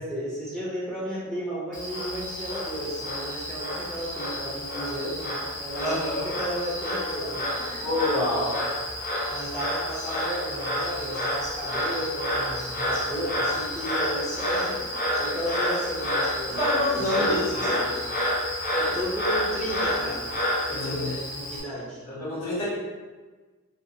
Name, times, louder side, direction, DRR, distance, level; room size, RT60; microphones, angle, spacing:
voice 1, 0.0-7.9 8.2-8.6 9.3-18.0 18.8-20.3 20.7-22.0, right 1 dB, 5° left, -7 dB, 0.5 m, -34 dB
Frog, 1.7-21.6, left 1 dB, 40° left, 0.7 m, -29 dB
voice 2, 5.8-6.3 7.8-8.5 16.5-17.8 20.7-21.1 22.1-22.6, left 1 dB, 90° left, -10 dB, 1.5 m, -27 dB
2.7 x 2.6 x 2.6 m, 1.3 s
head